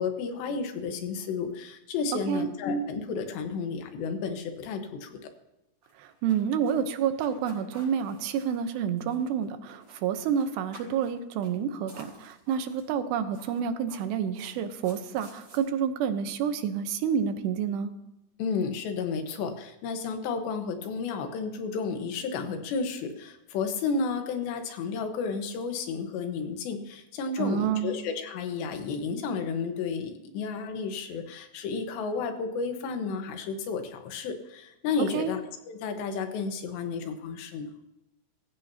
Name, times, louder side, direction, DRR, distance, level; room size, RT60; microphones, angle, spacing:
voice 1, 0.0-5.2 18.4-35.4 35.7-37.7, left 4 dB, 85° left, 6 dB, 3.5 m, -32 dB
sound 1, 5.8-9.4 9.7-10.0 10.3-11.1 11.4-11.6 11.9-12.9 13.3-15.6, right 2 dB, 35° right, 7.3 m, -52 dB
voice 2, 6.0-17.9 27.4-27.9 35.1-35.3, right 8 dB, 80° right, 9 dB, 3.0 m, -29 dB
21.5 x 16.0 x 2.8 m, 0.91 s
omnidirectional pair, 4.9 m